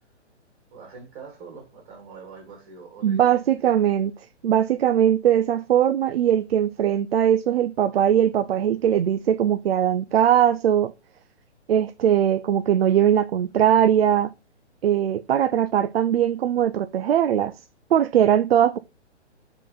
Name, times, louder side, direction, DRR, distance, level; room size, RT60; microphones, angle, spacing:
voice 1, 0.7-3.7, right 5 dB, 45° right, 3.5 m, -44 dB
voice 2, 3.0-4.1 4.4-10.9 11.7-14.3 14.8-17.5 17.9-18.8, right 10 dB, 60° right, 0.5 m, -20 dB
7.3 x 3.9 x 3.8 m
figure-of-eight pair, 130°, 35 cm